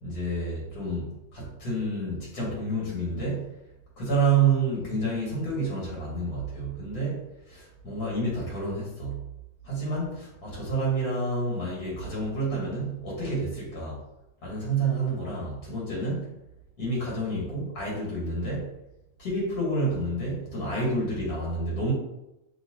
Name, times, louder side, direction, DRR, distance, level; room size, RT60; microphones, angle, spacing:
voice 1, 0.0-3.5 4.0-9.2 9.6-14.0 14.4-16.3 16.8-18.7 19.2-21.9, right 3 dB, 90° left, -4 dB, 1.9 m, -29 dB
5.7 x 2.8 x 2.8 m, 0.90 s
omnidirectional pair, 1.6 m